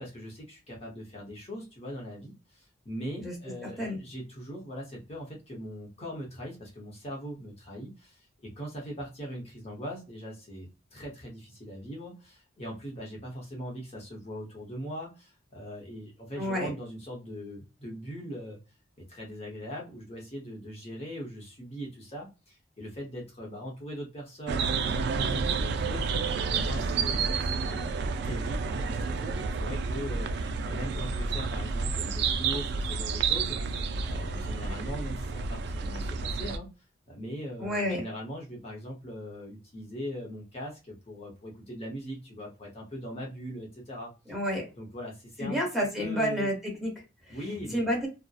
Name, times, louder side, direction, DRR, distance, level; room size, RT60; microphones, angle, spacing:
voice 1, 0.0-18.6 19.0-26.1 26.5-27.9 28.2-36.7 37.1-44.1 44.8-45.6 46.0-46.5 47.3-47.8, equal, 35° left, -2 dB, 0.8 m, -40 dB
voice 2, 3.6-4.0 16.4-16.7 37.6-38.0 44.3-44.7 45.4-46.5 46.8-46.9 47.3-47.4 47.7-48.1, equal, ahead, -3 dB, 0.9 m, -29 dB
sound 1, 24.5-36.6, right 4 dB, 65° right, 0.3 m, -30 dB
2.7 x 2.0 x 2.3 m, 0.28 s
head